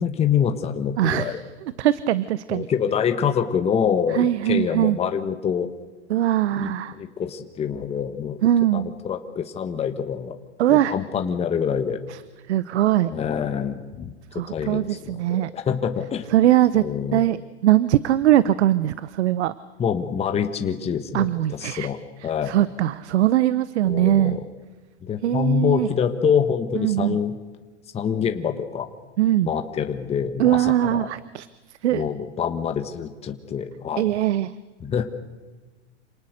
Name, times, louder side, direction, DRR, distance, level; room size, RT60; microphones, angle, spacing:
voice 1, 0.0-1.4 2.5-5.7 6.6-8.4 8.7-10.4 10.7-12.0 13.1-14.1 14.5-16.3 16.7-17.3 19.8-22.0 22.2-22.5 23.8-24.4 25.0-27.3 27.9-28.9 29.4-31.1 31.9-34.0 34.8-35.0, left 7 dB, 15° left, 7 dB, 1.3 m, -25 dB
voice 2, 1.0-1.4 1.8-2.7 4.1-5.0 6.1-7.0 8.4-8.9 10.6-11.0 12.1-12.2 12.5-13.1 14.3-15.5 16.3-16.8 17.1-19.5 21.1-21.9 22.4-24.4 25.2-25.9 26.8-27.2 29.2-29.5 30.4-31.5 31.8-32.0 34.0-34.5, right 13 dB, 70° right, 17 dB, 0.9 m, -21 dB
27.0 x 18.5 x 6.5 m, 1.3 s
hypercardioid pair, 130°, 35 cm